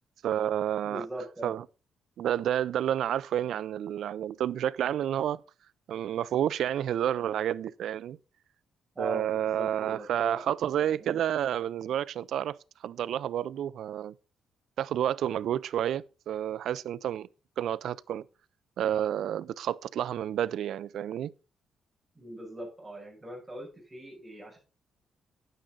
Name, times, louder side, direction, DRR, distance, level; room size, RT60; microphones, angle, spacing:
voice 1, 0.2-1.1 1.4-1.6 2.2-5.4 5.9-8.2 9.0-12.6 12.8-14.1 14.8-17.3 17.6-18.3 18.8-21.3, right 10 dB, 75° right, 0.4 m, -30 dB
voice 2, 0.8-1.5 8.9-10.4 22.1-24.6, right 1 dB, 10° right, 6.2 m, -40 dB
10.0 x 9.1 x 3.9 m
cardioid pair, 125°, 0 cm